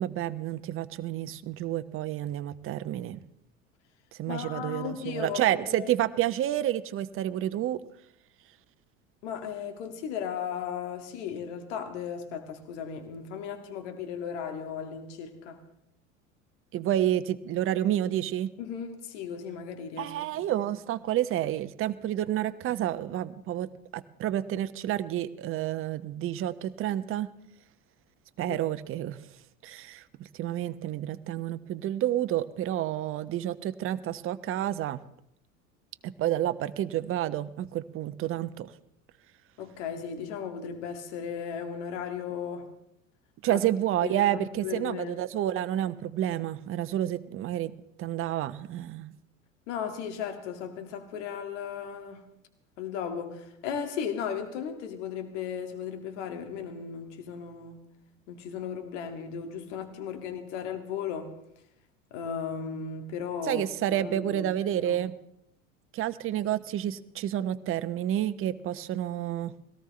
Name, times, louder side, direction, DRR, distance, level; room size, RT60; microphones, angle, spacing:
voice 1, 0.0-3.2 4.2-7.8 16.7-18.5 20.0-27.3 28.4-29.2 29.6-30.0 30.3-35.0 36.0-38.7 43.4-47.7 48.0-49.1 63.4-65.1 65.9-69.5, right 12 dB, 30° right, 13 dB, 0.8 m, -29 dB
voice 2, 4.3-5.9 9.2-15.6 18.6-20.6 28.5-28.6 39.6-42.7 43.5-43.6 44.0-45.2 49.7-52.2 52.8-57.8 58.3-61.3 62.1-63.6 63.9-65.0, left 7 dB, 60° left, 6 dB, 2.2 m, -36 dB
22.0 x 17.5 x 3.3 m, 0.77 s
figure-of-eight pair, 70°, 41 cm